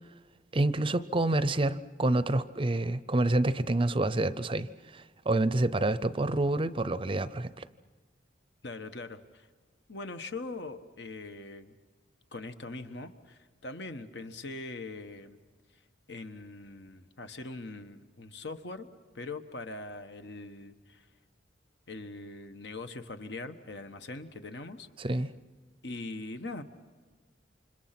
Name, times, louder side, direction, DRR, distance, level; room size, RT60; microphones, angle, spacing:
voice 1, 0.5-7.6 25.0-25.3, right 2 dB, 30° right, 0.6 m, -28 dB
voice 2, 8.6-9.5 9.9-11.8 12.3-15.4 16.1-18.9 19.1-21.1 21.9-24.9 25.8-26.6, left 2 dB, 65° left, 1.3 m, -41 dB
29.0 x 26.0 x 6.0 m
head